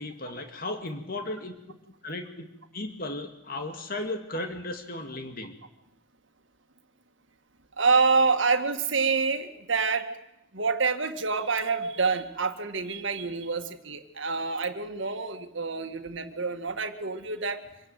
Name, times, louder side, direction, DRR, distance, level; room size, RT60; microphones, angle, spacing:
voice 1, 0.0-1.8 2.0-2.5 2.7-5.5, left 2 dB, 45° left, 6 dB, 2.2 m, -35 dB
voice 2, 7.8-10.1 10.5-17.6, right 4 dB, 65° right, 7 dB, 1.9 m, -27 dB
25.5 x 17.0 x 9.2 m, 0.87 s
head